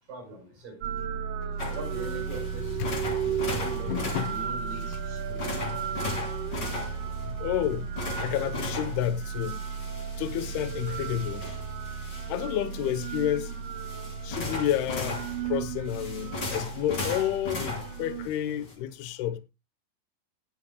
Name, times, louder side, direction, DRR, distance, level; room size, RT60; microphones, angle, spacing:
voice 1, 0.1-0.7 1.7-5.6, right 1 dB, 45° right, 6.7 m, -42 dB
sound 1, 0.8-18.3, right 6 dB, 80° right, 1.8 m, -34 dB
sound 2, 1.6-18.7, left 2 dB, 25° left, 3.2 m, -38 dB
voice 2, 3.9-4.4 4.8-4.9 7.2-9.6 10.2-11.5 12.3-13.5 14.2-19.4, left 11 dB, 80° left, 2.4 m, -30 dB
20.0 x 7.3 x 2.3 m
omnidirectional pair, 5.5 m